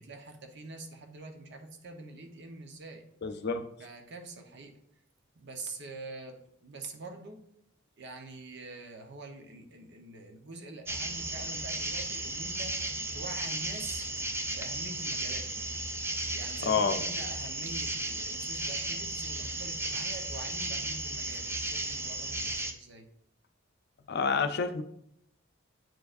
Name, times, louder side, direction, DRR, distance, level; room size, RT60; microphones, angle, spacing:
voice 1, 0.0-3.1 3.8-4.8 5.3-7.4 8.0-14.1 14.5-15.7 16.3-23.1, right 3 dB, 60° right, 4 dB, 0.9 m, -45 dB
voice 2, 3.2-3.6 16.7-17.0 24.1-24.8, left 5 dB, 55° left, 8 dB, 0.5 m, -28 dB
sound 1, 10.9-22.7, right 2 dB, 10° right, 0.5 m, -35 dB
9.0 x 4.6 x 2.5 m, 0.72 s
head